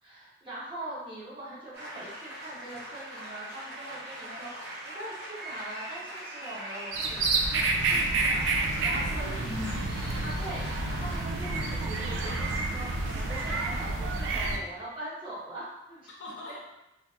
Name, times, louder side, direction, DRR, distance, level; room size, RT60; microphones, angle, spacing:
voice 1, 0.0-9.4 10.2-16.1, right 1 dB, 25° right, -8 dB, 0.8 m, -42 dB
sound 1, 1.7-13.9, right 1 dB, 55° right, 0.8 m, -41 dB
sound 2, 6.9-14.6, right 3 dB, 85° right, 0.4 m, -29 dB
voice 2, 8.7-10.1 16.2-16.6, left 2 dB, 65° left, -3 dB, 0.6 m, -40 dB
2.8 x 2.5 x 2.2 m, 0.91 s
head